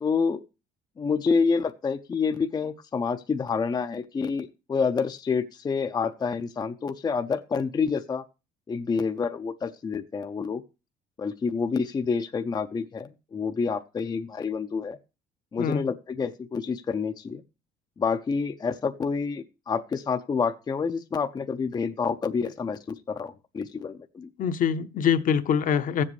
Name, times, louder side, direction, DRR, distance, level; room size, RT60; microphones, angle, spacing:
voice 1, 0.0-0.4 1.0-8.2 8.7-10.6 11.2-15.0 15.5-17.4 18.0-24.3, left 5 dB, 25° left, 0.5 m, -28 dB
voice 2, 24.4-26.0, left 7 dB, 55° left, 0.8 m, -24 dB
14.5 x 7.5 x 3.1 m
cardioid pair, 110°, 17 cm